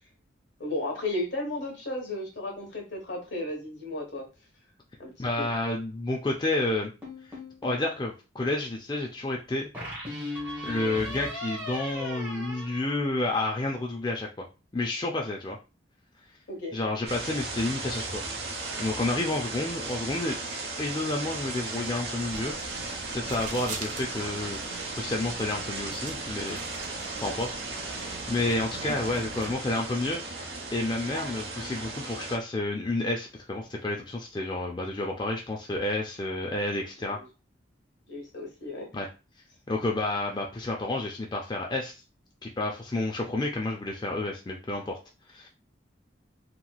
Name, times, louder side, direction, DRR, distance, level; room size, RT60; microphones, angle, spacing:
voice 1, 0.6-4.3 5.0-5.5 16.5-16.8 27.1-27.3 37.0-37.2 38.1-38.9, left 2 dB, 75° left, 2 dB, 1.1 m, -34 dB
voice 2, 5.2-6.9 7.3-9.7 10.6-14.4 14.7-15.6 16.7-18.2 18.5-20.4 20.8-22.6 23.1-24.7 24.9-26.6 27.2-27.5 27.8-37.2 38.9-39.1 39.7-41.9 42.4-45.0 45.3-45.5, left 2 dB, 25° left, 0 dB, 0.4 m, -30 dB
sound 1, 7.0-7.9 9.7-13.5, left 1 dB, 10° right, 1.0 m, -38 dB
sound 2, 17.1-32.4, right 3 dB, 60° right, 0.8 m, -36 dB
sound 3, 22.2-29.6, right 3 dB, 40° right, 0.4 m, -43 dB
3.0 x 2.8 x 2.2 m, 0.30 s
head